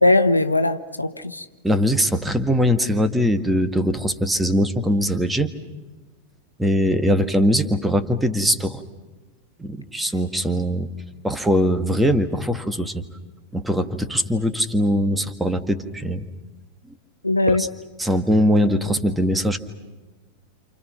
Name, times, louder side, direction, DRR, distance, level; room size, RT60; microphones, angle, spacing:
voice 1, 0.0-1.5 7.1-7.2 17.2-17.7, left 2 dB, 85° left, 1.1 m, -20 dB
voice 2, 1.6-5.5 6.6-8.8 9.6-10.9 11.2-13.0 13.5-16.3 17.5-17.7 18.0-19.6, equal, 5° right, 1.8 m, -21 dB
29.0 x 28.5 x 5.9 m
figure-of-eight pair, 90°, 0 cm